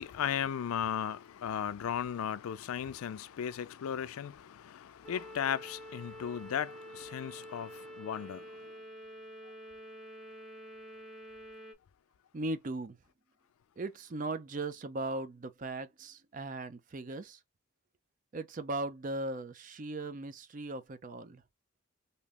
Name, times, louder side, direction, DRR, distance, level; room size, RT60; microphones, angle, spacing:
voice 1, 0.0-8.5, left 8 dB, 80° left, 0.3 m, -36 dB
sound 1, 5.0-11.7, equal, ahead, 0.8 m, -48 dB
voice 2, 12.3-13.0 13.8-17.4 18.3-21.4, right 2 dB, 40° right, 0.4 m, -38 dB
3.4 x 2.7 x 2.4 m
head